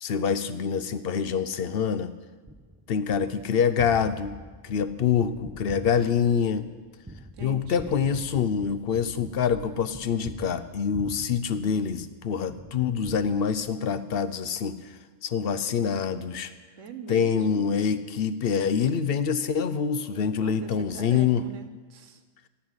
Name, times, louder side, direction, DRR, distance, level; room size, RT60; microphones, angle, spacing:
voice 1, 0.0-2.1 2.9-4.4 4.6-6.6 7.4-14.8 15.2-16.5 17.1-21.4, left 7 dB, 60° left, 12 dB, 0.8 m, -26 dB
Gunshot gunfire, 2.5-12.1 12.6-14.0, right 1 dB, 10° right, 0.5 m, -44 dB
voice 2, 7.3-8.0 16.8-17.8 20.3-22.2, right 6 dB, 85° right, 9 dB, 1.4 m, -41 dB
14.5 x 5.7 x 9.6 m, 1.4 s
omnidirectional pair, 1.3 m